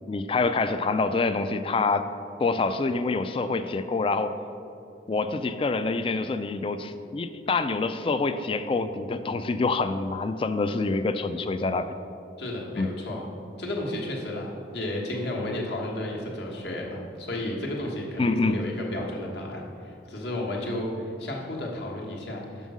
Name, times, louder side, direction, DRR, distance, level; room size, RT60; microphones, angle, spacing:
voice 1, 0.1-2.1 2.4-4.3 5.1-11.9 12.8-12.9 18.2-18.6, left 3 dB, 30° left, 10 dB, 0.3 m, -26 dB
voice 2, 12.4-13.2 13.6-22.7, left 1 dB, 65° left, -2 dB, 1.3 m, -32 dB
6.3 x 5.4 x 6.1 m, 2.7 s
head